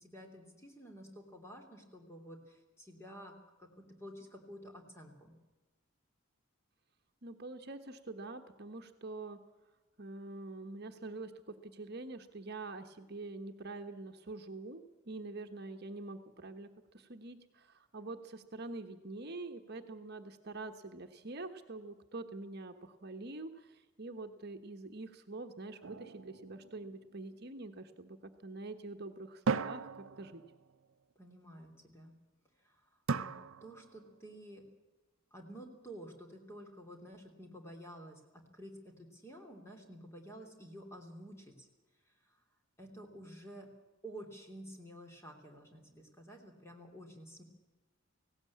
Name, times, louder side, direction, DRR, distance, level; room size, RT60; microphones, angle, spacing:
voice 1, 0.0-5.3 31.1-32.1 32.6-33.3 33.6-34.6 35.3-41.7 42.3-42.4 42.8-43.7 44.0-47.4, equal, 15° left, 2 dB, 2.9 m, -51 dB
voice 2, 7.2-9.4 10.0-16.7 16.9-29.9 30.2-30.4, right 2 dB, 50° right, 6 dB, 1.2 m, -45 dB
sound 1, 25.8-27.4 29.5-30.8 33.1-34.2, right 4 dB, 80° right, 0.6 m, -38 dB
18.5 x 17.0 x 8.6 m, 1.1 s
head